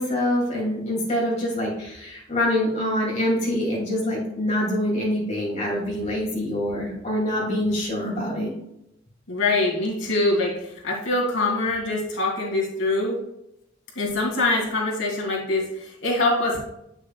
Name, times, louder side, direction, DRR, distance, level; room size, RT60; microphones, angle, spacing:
voice 1, 0.0-8.5, left 1 dB, 35° left, -4 dB, 2.5 m, -25 dB
voice 2, 9.3-13.2 13.9-16.6, left 2 dB, 80° left, -3 dB, 2.3 m, -24 dB
8.1 x 6.3 x 2.3 m, 0.81 s
head